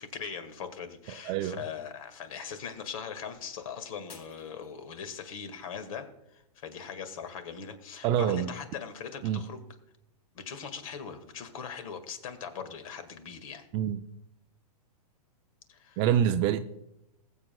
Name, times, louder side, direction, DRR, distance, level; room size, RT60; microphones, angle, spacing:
voice 1, 0.0-6.1 6.3-9.6 10.3-13.6 15.7-16.0, left 6 dB, 60° left, 1.8 m, -40 dB
voice 2, 1.3-1.6 8.0-8.5 9.2-9.4 13.7-14.0 16.0-16.6, right 10 dB, 25° right, 0.4 m, -26 dB
Shatter, 4.1-5.4 5.9-6.4 6.9-7.0, left 4 dB, 80° left, 4.1 m, -53 dB
21.0 x 7.7 x 2.3 m
hypercardioid pair, 145°, 20 cm